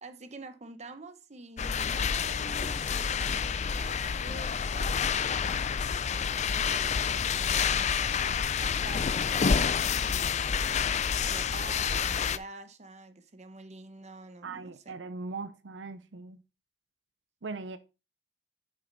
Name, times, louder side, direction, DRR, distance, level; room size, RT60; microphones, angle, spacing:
voice 1, 0.0-8.3 8.6-10.8 11.3-15.0, right 3 dB, 40° right, 1.0 m, -47 dB
sound 1, 1.6-12.4, left 6 dB, 40° left, 0.4 m, -28 dB
voice 2, 14.4-16.4 17.4-17.8, right 3 dB, 85° right, 0.6 m, -39 dB
9.4 x 6.5 x 4.0 m
head